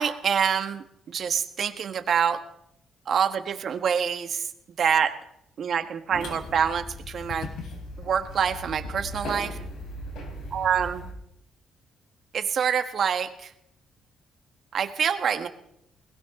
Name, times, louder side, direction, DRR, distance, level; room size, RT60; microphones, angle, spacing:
voice 1, 0.0-2.4 3.1-4.5 4.8-5.2 5.6-7.5 8.0-9.6 10.5-11.1 12.3-13.5 14.7-15.5, right 7 dB, 60° right, 8 dB, 1.6 m, -26 dB
sound 1, 6.1-11.1, left 1 dB, 80° left, 4.4 m, -38 dB
20.5 x 16.5 x 3.8 m, 0.75 s
cardioid pair, 90°, 0 cm